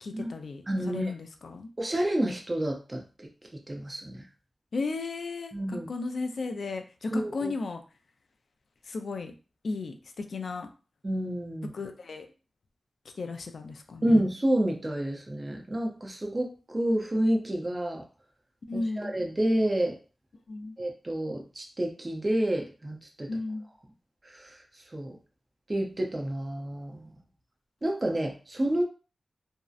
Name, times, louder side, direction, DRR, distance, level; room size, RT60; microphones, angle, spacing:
voice 1, 0.0-1.7 4.7-7.8 8.9-9.3 9.6-10.7 11.7-12.3 13.2-14.2 18.7-19.1 20.5-20.8 23.3-23.6, left 3 dB, 70° left, 6 dB, 0.3 m, -35 dB
voice 2, 0.7-1.1 1.8-3.3 3.7-4.2 5.5-5.9 7.1-7.5 11.0-11.7 14.0-18.0 19.0-20.0 20.8-23.3 24.2-24.6 24.9-25.2 25.7-27.1 27.8-28.8, right 1 dB, 25° right, 1 dB, 0.5 m, -29 dB
2.6 x 2.0 x 2.3 m, 0.34 s
wide cardioid pair, 125°, 0 cm